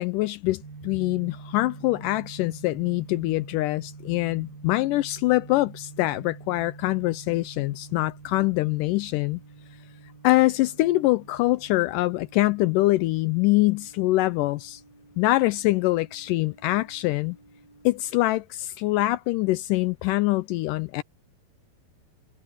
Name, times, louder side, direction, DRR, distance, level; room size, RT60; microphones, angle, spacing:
voice 1, 0.0-9.4 10.2-14.8 15.2-17.4 17.9-21.0, left 19 dB, 85° left, 1.9 m, -24 dB
sound 1, 0.6-18.1, right 4 dB, 75° right, 7.7 m, -47 dB
omnidirectional pair, 4.3 m